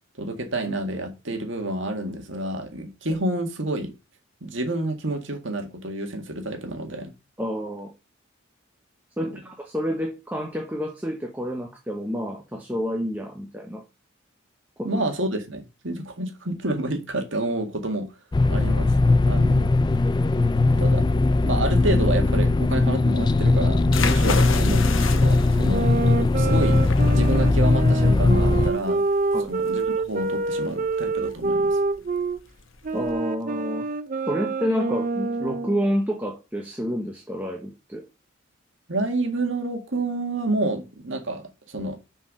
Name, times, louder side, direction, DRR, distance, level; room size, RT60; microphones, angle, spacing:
voice 1, 0.2-3.9 4.4-7.1 14.8-18.1 18.5-18.9 19.2-19.7 20.8-21.1 21.4-25.9 26.4-26.8 27.1-29.0 29.5-31.8 38.9-42.0, right 1 dB, 70° right, 1.9 m, -29 dB
voice 2, 7.4-7.9 9.2-13.8 14.8-15.0 29.3-29.5 32.9-33.8 34.3-38.0, equal, 10° right, 1.0 m, -29 dB
sound 1, 18.3-28.7, left 2 dB, 20° left, 0.3 m, -19 dB
sound 2, 23.8-33.1, left 5 dB, 80° left, 1.1 m, -34 dB
sound 3, 25.7-32.4 32.8-35.8, right 3 dB, 40° right, 0.5 m, -26 dB
6.9 x 4.7 x 6.2 m
head